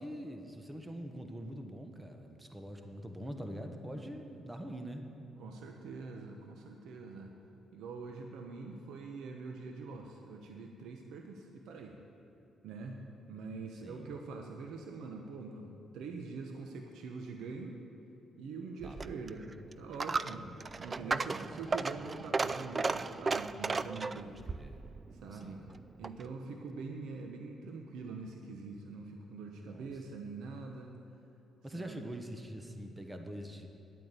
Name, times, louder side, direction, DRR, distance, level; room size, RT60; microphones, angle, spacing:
voice 1, 0.0-5.1 13.8-14.1 18.8-19.0 20.5-20.6 21.0-21.7 24.5-24.9 25.3-25.6 29.6-29.9 31.6-33.7, equal, 15° right, 5 dB, 1.2 m, -44 dB
voice 2, 5.4-7.3 7.7-12.0 12.6-13.0 13.3-17.8 18.4-19.5 19.8-20.5 20.8-24.3 25.2-25.6 26.0-30.9 31.7-32.0, right 4 dB, 80° right, 3 dB, 1.0 m, -44 dB
Coin (dropping), 18.8-26.3, right 4 dB, 30° right, 0.3 m, -36 dB
10.5 x 8.9 x 8.3 m, 3.0 s
cardioid pair, 90°, 0 cm